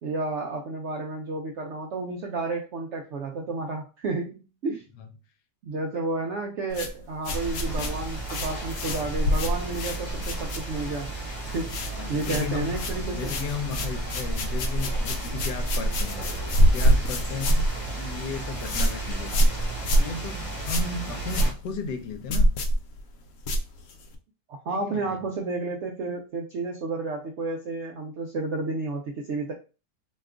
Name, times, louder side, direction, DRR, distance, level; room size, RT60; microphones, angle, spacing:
voice 1, 0.0-4.8 5.6-11.1 11.5-13.3 24.5-29.5, right 3 dB, 80° right, 0.6 m, -31 dB
sound 1, 6.7-11.1 11.3-11.9 12.2-24.2, right 1 dB, 70° left, 0.9 m, -26 dB
sound 2, 7.3-21.5, right 2 dB, 25° left, 0.8 m, -35 dB
voice 2, 11.9-12.8 13.1-16.2 16.6-17.6 18.0-19.6 19.9-22.5 24.7-25.2, left 4 dB, 85° left, 1.2 m, -35 dB
2.9 x 2.3 x 3.5 m
omnidirectional pair, 1.8 m